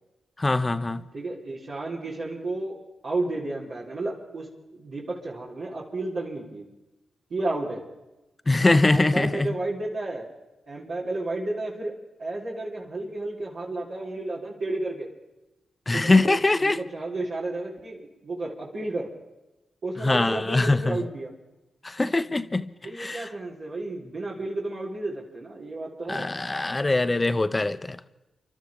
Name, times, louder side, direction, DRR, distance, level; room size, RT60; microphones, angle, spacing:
voice 1, 0.4-1.0 8.5-9.5 15.9-16.8 20.0-21.0 21.8-22.7 23.0-23.3 26.1-28.0, left 2 dB, 30° left, 0.8 m, -22 dB
voice 2, 1.1-2.8 3.0-4.5 4.7-6.6 7.3-7.8 8.6-10.3 10.7-11.9 12.2-15.1 15.9-19.1 19.8-21.3 22.8-26.3, right 2 dB, 75° right, 3.9 m, -32 dB
28.0 x 12.5 x 3.6 m
supercardioid pair, 45°, 0 cm